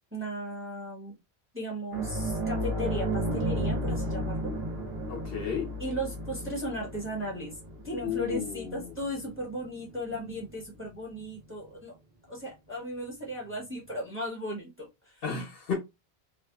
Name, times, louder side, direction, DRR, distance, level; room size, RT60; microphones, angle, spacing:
voice 1, 0.1-1.2 1.5-4.5 5.8-7.6 7.8-11.9 12.3-15.2, equal, 15° right, 0.9 m, -36 dB
sound 1, 1.9-10.9 11.2-11.4 13.4-13.5, right 1 dB, 70° right, 0.8 m, -33 dB
voice 2, 5.1-5.7 8.0-8.9 15.2-15.7, left 6 dB, 65° left, 1.0 m, -33 dB
2.6 x 2.2 x 2.2 m
omnidirectional pair, 1.1 m